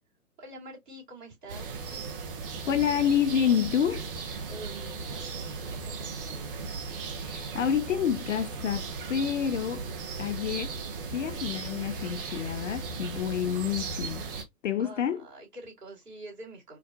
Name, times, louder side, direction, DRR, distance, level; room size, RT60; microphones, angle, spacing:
voice 1, 0.4-1.7 4.5-6.6 14.8-16.8, right 1 dB, 85° right, 2.5 m, -46 dB
sound 1, 1.5-14.4, right 4 dB, 35° right, 0.8 m, -37 dB
voice 2, 2.7-4.1 7.2-9.9 10.2-10.8 11.1-14.3 14.6-15.2, left 9 dB, 55° left, 0.5 m, -28 dB
4.7 x 2.4 x 2.3 m
figure-of-eight pair, 130°, 46 cm